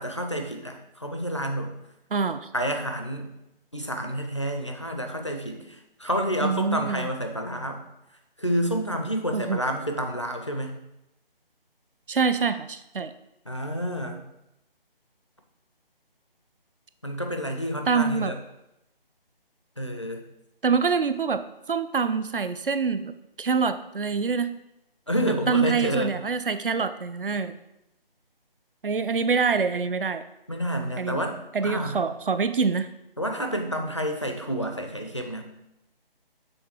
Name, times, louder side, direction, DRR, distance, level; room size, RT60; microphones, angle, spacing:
voice 1, 0.0-1.7 2.5-3.3 3.7-7.8 8.4-10.8 13.5-14.2 17.0-18.3 19.8-20.2 25.1-26.1 30.5-32.0 33.2-35.4, equal, 30° left, 3 dB, 0.4 m, -29 dB
voice 2, 2.1-2.5 6.4-7.1 9.3-9.6 12.1-13.1 17.9-18.3 20.6-24.5 25.5-27.5 28.8-30.2 31.0-31.2 31.5-32.9, right 5 dB, 65° right, 11 dB, 0.5 m, -25 dB
6.3 x 3.8 x 4.4 m, 0.88 s
figure-of-eight pair, 155°, 29 cm